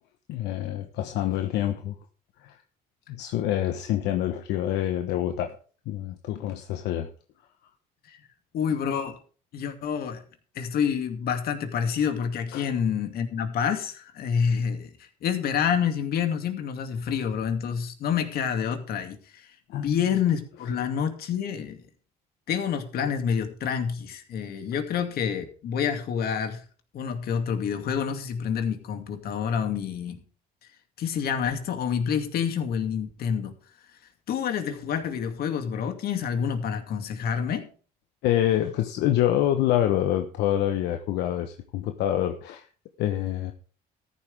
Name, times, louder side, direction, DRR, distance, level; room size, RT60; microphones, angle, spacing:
voice 1, 0.3-2.0 2.4-2.6 3.1-5.6 5.9-7.1 12.5-12.7 19.7-20.0 38.2-42.6 43.0-43.5, left 12 dB, 85° left, 6 dB, 1.1 m, -26 dB
voice 2, 8.5-9.2 9.5-10.2 10.6-21.8 22.5-26.6 26.9-30.2 31.0-33.5 34.3-37.7, left 7 dB, 65° left, 6 dB, 2.5 m, -28 dB
14.0 x 11.5 x 3.5 m, 0.39 s
cardioid pair, 110°, 17 cm